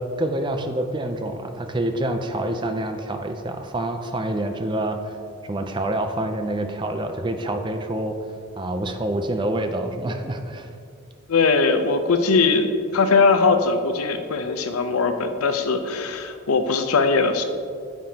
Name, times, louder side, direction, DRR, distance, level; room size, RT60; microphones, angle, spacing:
voice 1, 0.0-5.2 5.4-8.2 8.6-10.7, right 1 dB, 20° right, 6 dB, 0.4 m, -27 dB
voice 2, 11.3-17.4, left 4 dB, 90° left, 8 dB, 0.6 m, -20 dB
8.8 x 7.5 x 2.8 m, 2.4 s
head